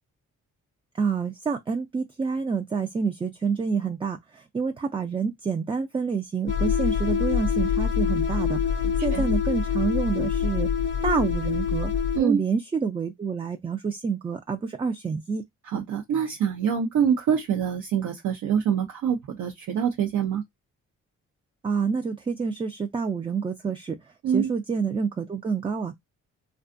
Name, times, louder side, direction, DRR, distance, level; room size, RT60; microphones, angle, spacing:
voice 1, 1.0-10.7 11.0-11.9 12.2-15.4 21.6-25.9, right 5 dB, 20° right, 0.3 m, -28 dB
sound 1, 6.5-12.2, left 7 dB, 40° left, 0.6 m, -25 dB
voice 2, 8.8-9.3 12.1-12.4 15.6-20.4 24.2-24.5, right 8 dB, 70° right, 0.6 m, -25 dB
2.4 x 2.3 x 2.5 m
cardioid pair, 70°, 30 cm